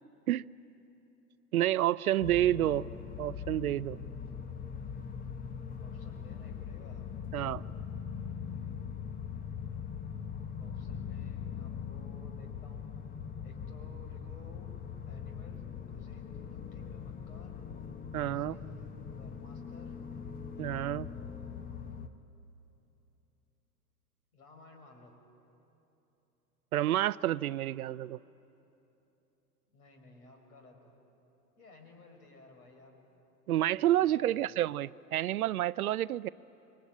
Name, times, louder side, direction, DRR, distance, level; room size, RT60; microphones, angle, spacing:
voice 1, 1.5-2.9 3.2-4.0 7.3-7.6 18.1-18.6 20.6-21.1 26.7-28.2 33.5-36.3, right 13 dB, 65° right, 19 dB, 0.6 m, -29 dB
sound 1, 2.2-22.1, left 7 dB, 20° left, 1.0 m, -41 dB
voice 2, 5.8-7.1 10.5-12.9 13.4-14.7 15.1-17.5 18.2-20.0 21.1-22.0 24.3-25.1 29.7-30.9 31.6-33.0 33.9-34.6, left 3 dB, 65° left, 3 dB, 5.8 m, -56 dB
27.5 x 23.0 x 9.0 m, 3.0 s
figure-of-eight pair, 95°, 48 cm